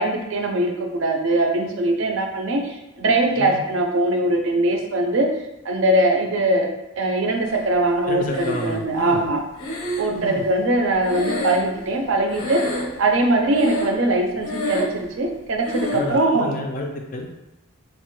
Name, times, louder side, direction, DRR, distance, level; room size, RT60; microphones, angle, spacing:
voice 1, 0.0-5.3 5.7-6.7 7.0-9.4 10.0-12.6 13.0-16.5, right 2 dB, 60° right, 2 dB, 0.4 m, -21 dB
voice 2, 8.1-9.3 10.1-10.5 15.9-17.3, left 1 dB, 35° left, 2 dB, 0.3 m, -30 dB
Breathing, 8.3-9.0 9.6-12.1 12.3-13.1 13.5-14.1 14.4-15.0 15.6-16.1, left 1 dB, 80° left, 0.6 m, -28 dB
2.9 x 2.1 x 3.0 m, 0.95 s
head